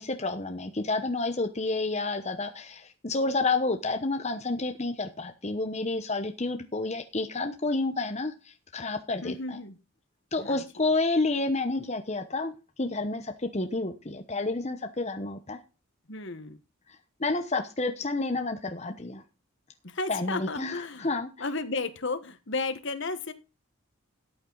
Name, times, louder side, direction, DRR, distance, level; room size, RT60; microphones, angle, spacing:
voice 1, 0.0-9.6 10.3-12.5 12.8-15.6 17.2-19.2 20.1-21.3, left 3 dB, 30° left, 6 dB, 1.0 m, -30 dB
voice 2, 9.2-9.8 10.4-10.6 16.1-16.6 19.8-21.1 21.4-23.3, left 3 dB, 55° left, 11 dB, 1.3 m, -33 dB
13.5 x 8.5 x 4.0 m, 0.31 s
head